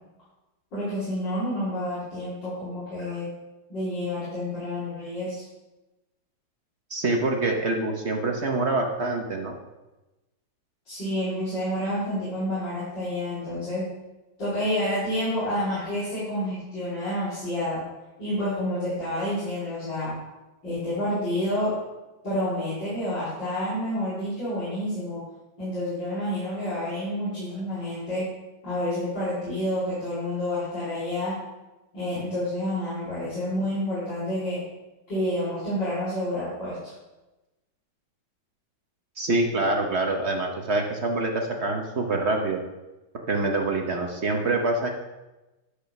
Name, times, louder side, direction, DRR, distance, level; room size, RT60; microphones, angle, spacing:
voice 1, 0.7-3.3 3.7-5.4 10.9-13.8 14.4-17.8 18.2-20.2 20.6-21.8 22.2-25.2 25.6-28.3 28.6-31.3 31.9-34.6 35.1-36.9, left 1 dB, 65° left, -13 dB, 4.6 m, -29 dB
voice 2, 6.9-9.5 39.2-42.6 43.3-44.9, right 2 dB, 45° right, 2 dB, 1.0 m, -25 dB
11.0 x 5.0 x 5.9 m, 1.1 s
omnidirectional pair, 2.1 m